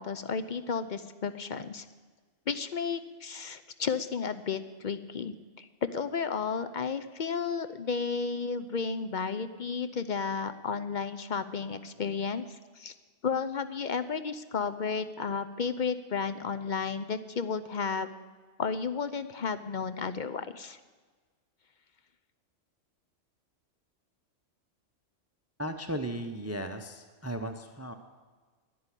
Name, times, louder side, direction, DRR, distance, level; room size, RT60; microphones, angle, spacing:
voice 1, 0.0-1.9 2.5-12.9 13.2-18.1 18.6-20.8, left 5 dB, 50° left, 11 dB, 0.6 m, -33 dB
voice 2, 25.6-27.9, right 1 dB, 15° right, 7 dB, 0.6 m, -36 dB
11.0 x 10.5 x 9.8 m, 1.4 s
omnidirectional pair, 1.3 m